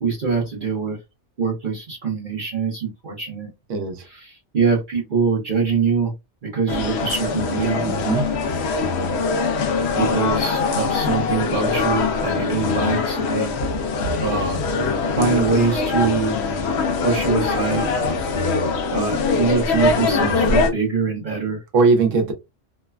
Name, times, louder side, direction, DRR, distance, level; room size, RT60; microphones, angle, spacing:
voice 1, 0.0-1.0 1.4-3.5 4.1-6.1 6.4-7.8 10.0-13.5 14.2-14.6 15.1-16.4 17.0-17.9 18.9-21.6, right 5 dB, 45° right, 0.9 m, -23 dB
voice 2, 3.7-4.0 7.8-8.3 21.7-22.3, right 4 dB, 75° right, 1.1 m, -19 dB
sound 1, 6.7-20.7, left 4 dB, 65° left, 0.8 m, -22 dB
3.1 x 2.1 x 2.2 m
omnidirectional pair, 1.3 m